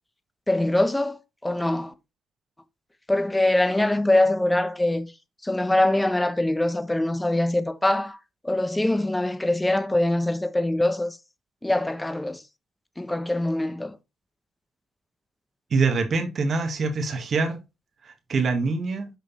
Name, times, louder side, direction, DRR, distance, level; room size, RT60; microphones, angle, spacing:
voice 1, 0.5-1.9 3.1-5.1 5.4-8.2 8.4-11.2 11.6-12.4 13.0-13.9, left 1 dB, 10° left, 1.1 m, -23 dB
voice 2, 15.7-17.6 18.1-19.1, right 4 dB, 50° right, 1.9 m, -24 dB
6.3 x 5.3 x 4.2 m
cardioid pair, 85°, 0 cm